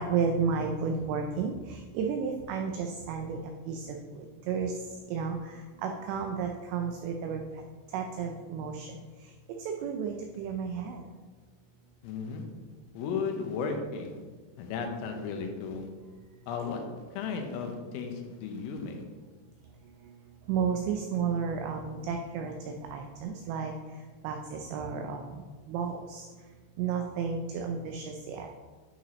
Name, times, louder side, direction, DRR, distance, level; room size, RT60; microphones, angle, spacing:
voice 1, 0.0-3.4 3.7-4.0 4.5-4.7 5.1-5.4 5.8-7.4 7.9-8.9 9.7-11.0 20.5-23.7 24.2-25.3 25.7-26.3 26.8-28.5, right 6 dB, 90° right, 3 dB, 2.5 m, -32 dB
voice 2, 12.0-12.5 13.0-14.2 14.6-15.9 16.5-16.8 17.1-19.0, left 5 dB, 90° left, 4 dB, 3.7 m, -34 dB
11.0 x 5.9 x 3.1 m, 1.4 s
omnidirectional pair, 5.9 m